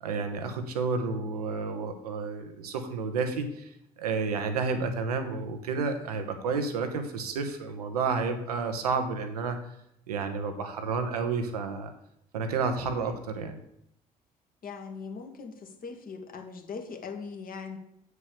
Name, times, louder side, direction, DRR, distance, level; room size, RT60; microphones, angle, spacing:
voice 1, 0.0-3.7 4.0-9.6 10.1-11.9 12.3-13.6, right 4 dB, 85° right, 7 dB, 1.0 m, -30 dB
voice 2, 14.6-17.8, left 5 dB, 45° left, 5 dB, 1.7 m, -40 dB
8.3 x 4.7 x 6.9 m, 0.77 s
figure-of-eight pair, 45°, 19 cm